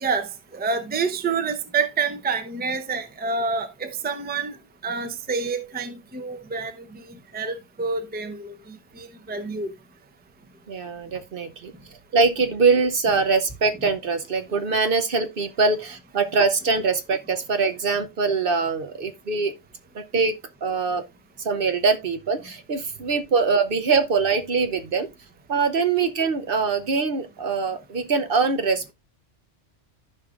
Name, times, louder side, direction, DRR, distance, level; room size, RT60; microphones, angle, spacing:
voice 1, 0.0-4.6 4.8-7.0 7.3-9.7, right 4 dB, 10° right, 0.6 m, -28 dB
voice 2, 10.7-11.7 12.1-19.5 19.9-20.3 20.6-21.0 21.4-25.1 25.5-28.9, right 4 dB, 55° right, 0.9 m, -23 dB
14.5 x 5.1 x 2.4 m
omnidirectional pair, 1.2 m